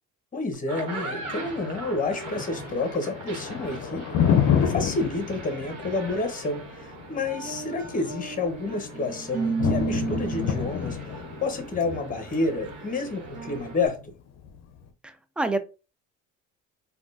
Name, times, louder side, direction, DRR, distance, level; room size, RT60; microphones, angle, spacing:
voice 1, 0.3-4.2 4.6-11.0 11.4-14.0, left 3 dB, 25° left, 1.0 m, -29 dB
sound 1, 0.5-13.9, right 3 dB, 60° right, 1.2 m, -41 dB
Thunder, 0.8-14.8, left 8 dB, 60° left, 0.6 m, -30 dB
sound 2, 7.4-11.0 11.6-11.8 12.3-12.6 13.3-13.7, right 5 dB, 25° right, 1.0 m, -32 dB
voice 2, 15.0-15.6, right 2 dB, 5° right, 0.3 m, -27 dB
3.6 x 2.3 x 2.5 m
cardioid pair, 95°, 30 cm